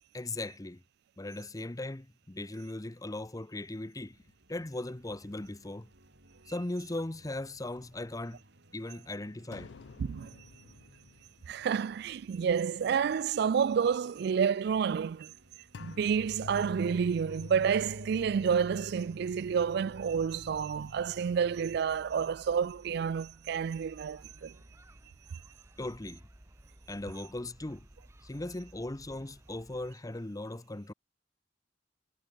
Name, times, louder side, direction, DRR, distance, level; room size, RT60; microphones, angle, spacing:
voice 1, 0.1-0.8 1.2-4.2 4.5-5.9 6.5-8.4 8.7-9.7 25.8-26.2 26.9-27.9 28.2-30.9, left 2 dB, 20° left, 0.8 m, -38 dB
sound 1, 4.0-19.4, right 1 dB, 80° right, 6.4 m, -62 dB
sound 2, 9.5-12.6 13.0-13.1 15.7-21.8, left 4 dB, 90° left, 0.5 m, -48 dB
voice 2, 10.0-10.3 11.5-15.3 15.8-24.5, right 7 dB, 65° right, 0.3 m, -29 dB
sound 3, 16.1-29.9, equal, 15° right, 1.6 m, -57 dB
head